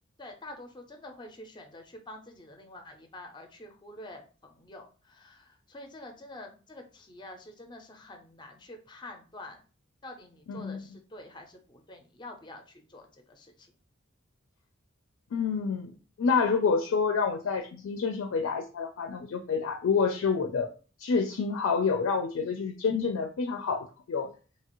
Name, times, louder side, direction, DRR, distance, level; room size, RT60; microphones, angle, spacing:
voice 1, 0.2-9.6 10.0-13.7, left 1 dB, 20° left, 5 dB, 0.4 m, -47 dB
voice 2, 10.5-10.8 15.3-20.7 21.0-24.3, left 5 dB, 85° left, 6 dB, 0.4 m, -28 dB
2.8 x 2.3 x 2.9 m, 0.36 s
head